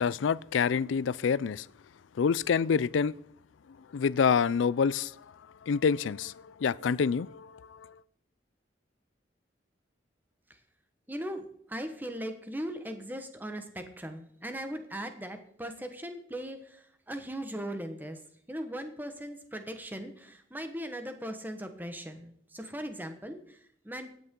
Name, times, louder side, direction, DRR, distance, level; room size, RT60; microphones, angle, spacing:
voice 1, 0.0-1.7 2.2-3.1 3.9-5.2 5.6-7.9, left 6 dB, 85° left, 0.4 m, -27 dB
voice 2, 11.1-18.2 18.5-24.1, equal, 10° right, 1.2 m, -39 dB
16.0 x 9.5 x 3.8 m
head